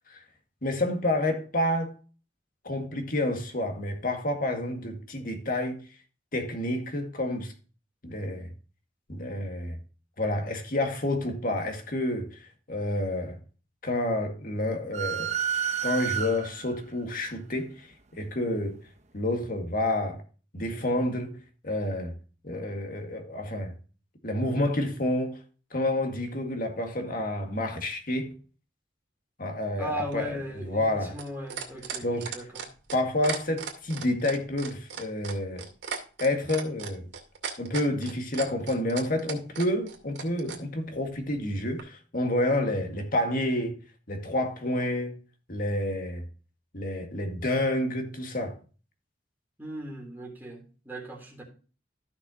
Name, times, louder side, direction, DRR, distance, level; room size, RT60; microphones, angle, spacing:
voice 1, 0.6-1.9 2.6-5.8 6.3-7.5 8.0-8.5 9.1-9.8 10.2-13.4 13.8-15.3 15.8-17.9 18.1-18.8 19.1-20.2 20.5-22.2 22.4-23.7 24.2-25.4 25.7-28.4 29.4-31.1 32.0-32.3 32.9-35.7 36.2-37.0 37.6-43.8 44.1-45.2 45.5-46.2 46.7-48.6, left 1 dB, 50° left, 2.0 m, -29 dB
sound 1, 14.9-16.8, right 9 dB, 40° right, 0.9 m, -30 dB
voice 2, 29.8-32.0 32.3-32.6 49.6-51.4, equal, 10° right, 3.4 m, -37 dB
sound 2, 30.1-40.6 41.8-41.9, right 6 dB, 80° right, 2.4 m, -36 dB
15.0 x 6.0 x 2.8 m
head